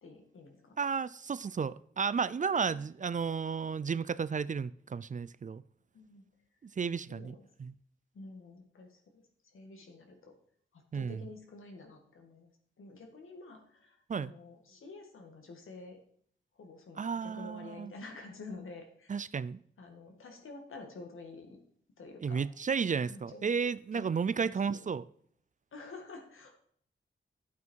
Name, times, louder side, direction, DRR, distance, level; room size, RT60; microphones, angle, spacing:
voice 1, 0.0-0.8 2.4-2.8 5.9-6.2 7.1-7.5 8.1-10.3 10.7-12.5 12.8-16.0 16.5-19.2 19.8-21.6 22.0-22.4 23.0-23.5 23.9-24.1 24.3-24.8 25.7-26.6, left 3 dB, 85° left, 2.0 m, -49 dB
voice 2, 0.8-5.6 6.8-7.7 10.9-11.2 14.1-14.3 17.0-17.9 19.1-19.6 22.2-25.0, right 6 dB, 40° right, 0.4 m, -33 dB
12.0 x 8.3 x 4.6 m
wide cardioid pair, 90°, 20 cm